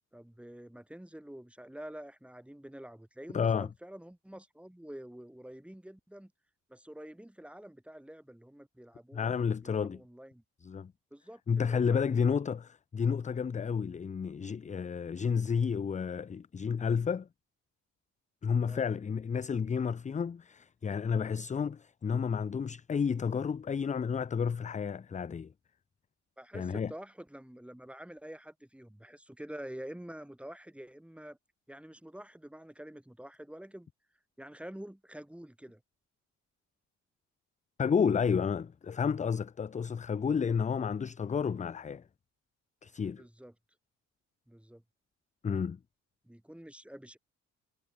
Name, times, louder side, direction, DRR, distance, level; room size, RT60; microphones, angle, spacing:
voice 1, 0.1-6.3 6.7-10.4 11.1-12.5 18.6-18.9 26.4-31.4 31.7-33.9 34.4-35.8 43.1-43.5 44.5-44.8 46.2-47.2, right 1 dB, 5° right, 4.5 m, -48 dB
voice 2, 3.3-3.7 9.1-10.0 10.6-10.9 11.5-17.3 18.4-25.5 26.5-26.9 37.8-42.0 42.8-43.2 45.4-45.8, left 6 dB, 25° left, 0.5 m, -31 dB
cardioid pair, 90°, 30 cm